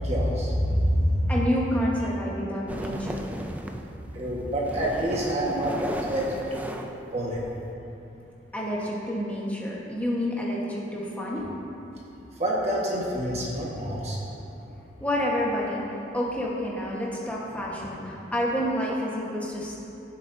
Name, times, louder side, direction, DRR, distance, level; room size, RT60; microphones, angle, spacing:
voice 1, 0.0-1.3 4.1-6.7 7.1-7.4 12.4-14.2, equal, 35° right, -5 dB, 1.5 m, -26 dB
voice 2, 1.3-3.3 8.5-11.5 15.0-15.8 16.1-19.8, equal, 10° left, -5 dB, 1.3 m, -29 dB
sound 1, 2.7-3.9 4.4-7.7, equal, 10° right, 0.4 m, -36 dB
16.5 x 7.5 x 2.7 m, 2.9 s
head